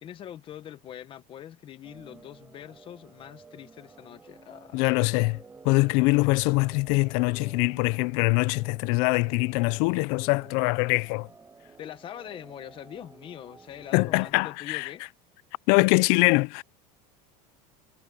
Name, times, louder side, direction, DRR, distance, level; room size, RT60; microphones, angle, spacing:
voice 1, 0.0-4.9 11.8-15.0, left 10 dB, 30° left, 0.9 m, -43 dB
sound 1, 1.8-14.3, right 4 dB, 10° right, 6.4 m, -52 dB
voice 2, 4.7-5.4 5.6-11.3 13.9-14.9 15.7-16.6, left 27 dB, 55° left, 0.5 m, -23 dB
cardioid pair, 165°, 19 cm